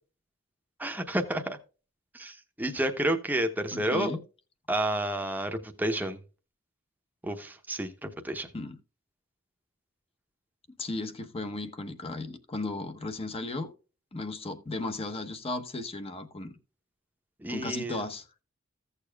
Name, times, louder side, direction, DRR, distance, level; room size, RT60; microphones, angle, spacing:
voice 1, 0.8-1.6 2.1-4.1 4.7-6.2 7.2-8.5 17.4-18.0, right 1 dB, 10° right, 0.9 m, -30 dB
voice 2, 3.7-4.2 8.5-8.8 10.8-13.7 14.1-16.5 17.5-18.3, left 2 dB, 30° left, 0.9 m, -35 dB
15.5 x 6.8 x 2.3 m
head